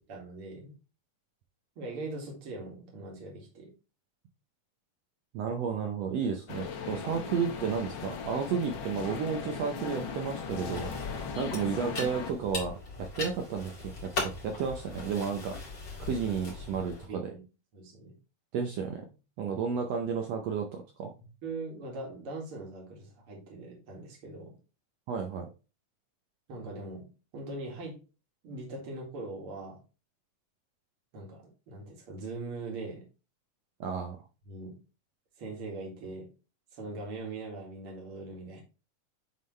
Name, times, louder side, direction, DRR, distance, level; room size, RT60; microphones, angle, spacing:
voice 1, 0.1-0.7 1.8-3.7 13.1-13.2 17.1-17.4 17.7-18.1 21.4-24.6 26.5-27.1 27.3-28.0 28.4-29.8 31.1-33.0 34.4-34.8 35.4-36.3 36.7-38.6, right 2 dB, 50° right, -1 dB, 2.8 m, -41 dB
voice 2, 5.3-11.1 11.4-15.6 16.0-17.2 18.5-19.0 19.4-21.1 25.1-25.5 33.8-34.2, right 6 dB, 70° right, 3 dB, 1.7 m, -32 dB
sound 1, 6.5-12.3, left 6 dB, 85° left, 1.0 m, -38 dB
sound 2, 10.5-17.1, left 3 dB, 40° left, 3.0 m, -39 dB
9.3 x 3.9 x 3.2 m, 0.32 s
omnidirectional pair, 3.5 m